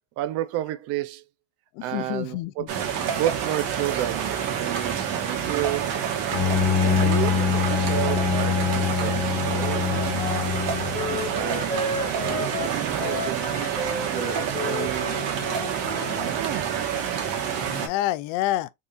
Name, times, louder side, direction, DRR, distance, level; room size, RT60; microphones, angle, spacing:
voice 1, 0.2-1.2 1.8-2.7 3.2-6.0 6.8-9.9 11.1-15.3 16.2-16.7, right 14 dB, 55° right, 0.5 m, -32 dB
voice 2, 1.8-2.7 17.6-18.7, left 15 dB, 65° left, 0.5 m, -28 dB
sound 1, 2.7-17.9, right 8 dB, 70° right, 1.3 m, -28 dB
Bowed string instrument, 6.3-11.3, left 7 dB, 45° left, 1.7 m, -24 dB
Wind instrument woodwind instrument, 9.7-16.3, left 4 dB, 15° left, 2.3 m, -33 dB
4.0 x 3.6 x 2.4 m
cardioid pair, 140°, 30 cm